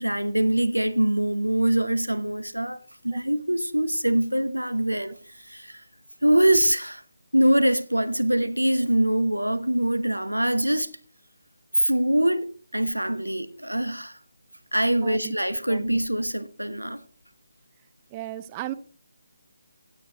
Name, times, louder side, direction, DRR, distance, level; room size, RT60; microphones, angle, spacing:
voice 1, 0.0-5.8 6.2-7.0 7.3-10.9 11.7-12.5 12.7-14.2 14.7-17.0, right 1 dB, 85° right, 1.0 m, -23 dB
voice 2, 15.0-15.4 15.7-15.9 18.1-18.7, right 14 dB, 20° right, 0.7 m, -35 dB
16.5 x 9.4 x 2.9 m
figure-of-eight pair, 150°, 0 cm